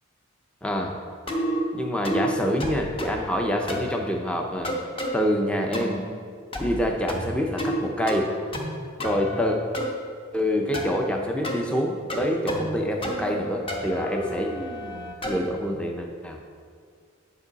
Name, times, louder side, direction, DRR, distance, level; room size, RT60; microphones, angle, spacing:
voice 1, 0.6-1.0 1.7-4.7 5.1-6.0 6.6-8.3 9.0-9.6 10.3-14.5 15.2-16.4, equal, 5° left, 2 dB, 0.5 m, -26 dB
sound 1, 1.3-1.6 2.0-2.3 2.6-3.2 3.7-3.9 4.6-5.1 5.7-6.0 6.5-6.8 7.1-7.8 8.1-8.7 9.0-9.9 10.7-11.0 11.4-11.6 12.1-12.7 13.0-13.4 13.7-15.5, equal, 25° left, 0.9 m, -30 dB
9.8 x 5.3 x 4.0 m, 2.1 s
head